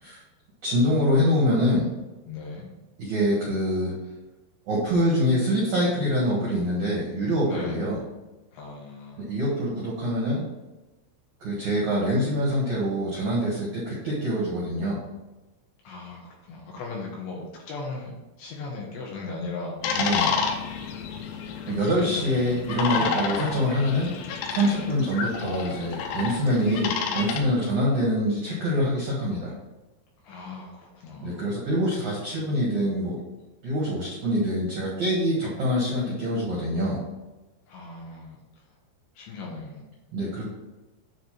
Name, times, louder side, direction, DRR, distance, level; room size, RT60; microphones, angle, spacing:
voice 1, 0.6-1.9 3.0-3.9 4.7-8.0 9.2-10.4 11.4-15.0 20.0-20.3 21.7-29.5 31.2-33.2 33.6-37.0 40.1-40.4, equal, 75° right, -5 dB, 1.7 m, -25 dB
voice 2, 2.3-2.7 7.5-7.8 8.5-9.3 15.8-19.8 21.7-22.3 22.9-23.3 24.7-25.0 30.2-31.6 37.7-38.6 39.1-39.8, left 3 dB, 75° left, -2 dB, 2.8 m, -38 dB
sound 1, 19.8-27.4, left 5 dB, 90° left, 3.6 m, -30 dB
9.4 x 3.3 x 5.8 m, 1.1 s
omnidirectional pair, 6.0 m